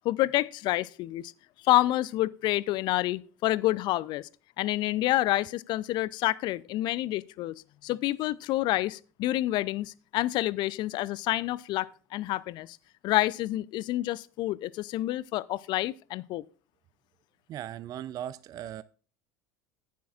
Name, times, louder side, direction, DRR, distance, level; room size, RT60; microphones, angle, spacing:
voice 1, 0.0-1.3 1.6-4.3 4.6-12.8 13.0-16.5, left 16 dB, 50° left, 0.4 m, -28 dB
voice 2, 17.5-18.8, right 11 dB, 40° right, 0.4 m, -38 dB
14.5 x 9.3 x 2.4 m
figure-of-eight pair, 70°, 10 cm